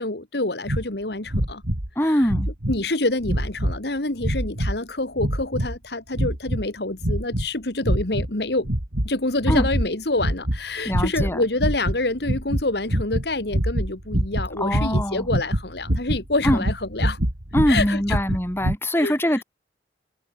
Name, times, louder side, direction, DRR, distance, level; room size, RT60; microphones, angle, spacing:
voice 1, 0.0-1.6 2.0-2.3 2.7-8.7 9.0-17.2 17.7-18.2 19.0-19.4, left 2 dB, 60° left, 2.0 m, -27 dB
sound 1, 0.7-0.9 1.3-1.9 2.2-2.8 3.2-3.8 4.2-4.8 5.2-5.8 6.1-6.7 7.0-7.5 7.8-8.3 8.7-9.1 9.4-9.9 10.2-10.6 10.9-11.3 11.6-18.8, right 1 dB, 70° right, 3.4 m, -25 dB
voice 2, 2.0-2.5 9.5-9.6 10.8-11.4 14.6-15.3 16.4-16.6 17.5-19.4, equal, 15° left, 4.4 m, -23 dB
head